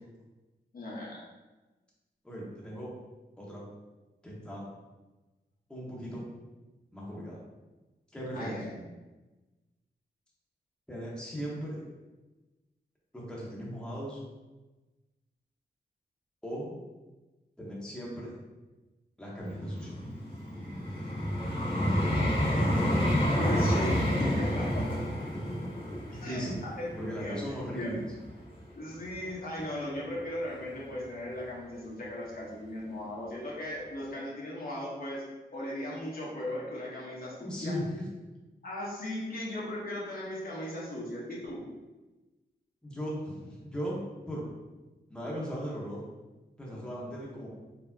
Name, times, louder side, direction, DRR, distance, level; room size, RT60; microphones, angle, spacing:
voice 1, 0.7-1.2 8.4-8.8 23.4-24.9 26.2-26.5 26.8-26.9 27.2-27.4 27.7-27.9 28.7-35.2 35.5-37.7 38.6-41.6, left 1 dB, 55° left, -5 dB, 1.1 m, -37 dB
voice 2, 2.2-2.9 3.4-3.6 4.2-4.7 5.7-6.3 6.9-7.4 8.1-8.5 10.9-11.8 13.1-14.2 16.4-16.8 17.6-18.3 19.2-19.9 26.1-26.6 27.0-28.1 37.4-38.1 42.8-44.0 44.3-44.5 45.1-46.0 46.6-47.5, equal, 5° left, -5 dB, 1.0 m, -37 dB
Vehicle, 19.4-28.5 29.1-29.3, equal, 30° left, 1.0 m, -29 dB
4.3 x 3.3 x 2.7 m, 1.1 s
wide cardioid pair, 105°, 19 cm